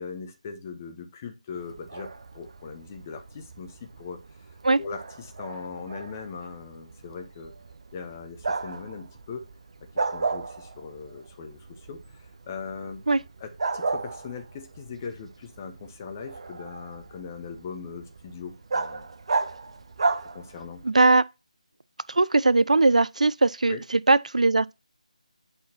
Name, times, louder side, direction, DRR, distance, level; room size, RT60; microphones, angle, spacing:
voice 1, 0.0-4.2 4.8-7.5 7.9-9.5 10.1-13.1 13.4-19.1 20.3-20.8 23.7-23.8, left 5 dB, 25° left, 1.0 m, -40 dB
Bark, 1.5-20.9, right 3 dB, 50° right, 1.0 m, -35 dB
voice 2, 20.8-21.3 22.1-24.7, right 3 dB, 70° right, 0.4 m, -20 dB
8.5 x 4.2 x 4.2 m
figure-of-eight pair, 160°, 4 cm